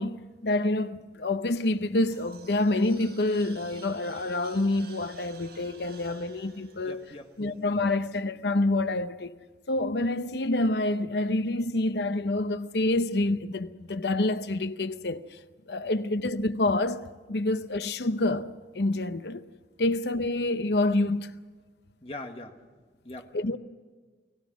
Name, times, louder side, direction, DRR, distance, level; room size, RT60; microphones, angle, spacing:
voice 1, 0.0-7.0 7.4-9.4 9.7-15.4 15.7-18.5 18.7-19.4 19.8-21.3 23.3-23.6, left 2 dB, 75° left, 0.8 m, -27 dB
sound 1, 1.7-8.0, right 4 dB, 85° right, 5.6 m, -52 dB
voice 2, 6.8-7.5 15.8-16.0 17.3-17.5 22.0-22.6 23.0-23.4, left 2 dB, 35° left, 1.6 m, -43 dB
29.5 x 18.5 x 6.1 m
head